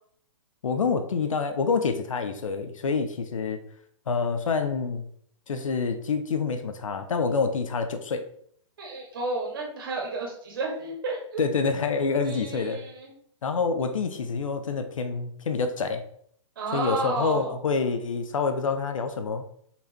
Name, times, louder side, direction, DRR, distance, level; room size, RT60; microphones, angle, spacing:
voice 1, 0.6-3.6 4.1-5.1 5.5-8.2 11.4-12.8 13.4-16.0 16.7-19.5, left 5 dB, 80° left, 8 dB, 1.1 m, -27 dB
voice 2, 8.8-11.4 12.2-13.1 16.6-17.5, right 3 dB, 45° right, 0 dB, 2.3 m, -32 dB
5.7 x 4.9 x 4.4 m, 0.63 s
hypercardioid pair, 175°, 17 cm